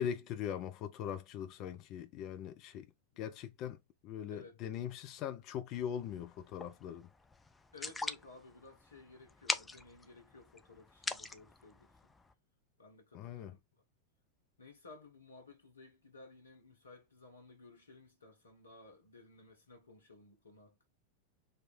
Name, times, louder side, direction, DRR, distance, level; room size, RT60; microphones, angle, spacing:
voice 1, 0.0-2.9 3.2-3.8 4.0-7.1 13.1-13.5, left 9 dB, 40° left, 0.8 m, -40 dB
sound 1, 5.7-12.3, left 3 dB, 10° left, 0.5 m, -44 dB
voice 2, 7.7-12.1 12.8-13.8 14.6-20.9, left 3 dB, 75° left, 1.5 m, -56 dB
3.7 x 3.2 x 4.3 m
figure-of-eight pair, 90°, 0 cm